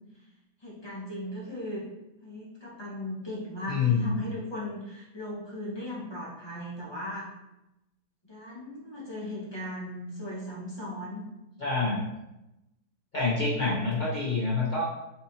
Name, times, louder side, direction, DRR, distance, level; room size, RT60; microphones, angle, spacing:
voice 1, 0.6-1.9 2.2-7.3 8.2-11.2, left 1 dB, 20° left, -6 dB, 0.6 m, -38 dB
voice 2, 3.7-4.2 11.6-12.0 13.1-14.8, left 4 dB, 75° left, -8 dB, 0.4 m, -26 dB
4.3 x 4.1 x 2.7 m, 0.92 s
omnidirectional pair, 2.1 m